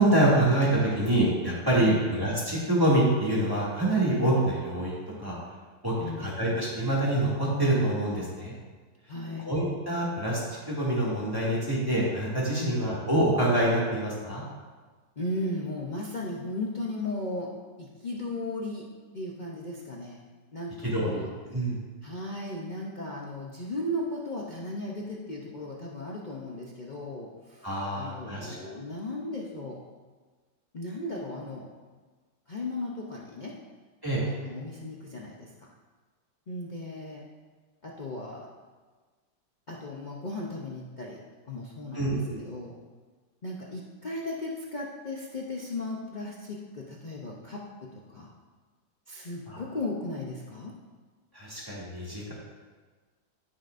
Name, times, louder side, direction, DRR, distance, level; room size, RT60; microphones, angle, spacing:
voice 1, 0.0-5.4 5.8-8.5 9.4-10.4 10.7-14.4 20.8-21.8 27.6-28.5 34.0-34.2 41.9-42.4 49.5-49.6 51.3-52.3, right 1 dB, 10° right, -7 dB, 2.1 m, -26 dB
voice 2, 6.0-6.3 9.1-9.5 12.5-12.8 15.2-17.5 17.8-18.9 19.1-20.2 20.5-21.3 22.0-29.8 30.7-31.7 32.5-33.6 34.2-35.7 36.5-37.2 37.8-38.5 39.7-41.2 41.5-42.1 42.4-42.8 43.4-48.3 49.1-50.7, left 2 dB, 70° left, -3 dB, 0.4 m, -36 dB
14.5 x 5.8 x 2.6 m, 1.4 s
omnidirectional pair, 2.0 m